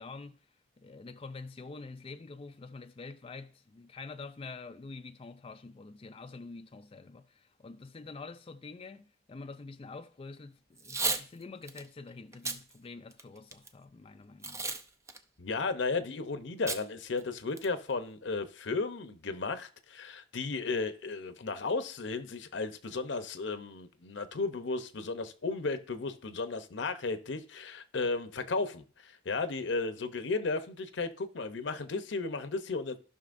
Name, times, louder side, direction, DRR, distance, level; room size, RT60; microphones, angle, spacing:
voice 1, 0.0-14.8, left 3 dB, 30° left, 0.4 m, -46 dB
Packing tape duct tape / Tearing, 10.8-11.2 11.7-11.8 12.3-12.6 13.1-13.7 14.4-14.8 15.1-15.2 16.7-16.8 17.2-17.3 17.6-17.9, right 3 dB, 15° right, 0.6 m, -33 dB
voice 2, 15.4-33.0, left 3 dB, 80° left, 0.8 m, -34 dB
15.0 x 5.9 x 2.6 m
head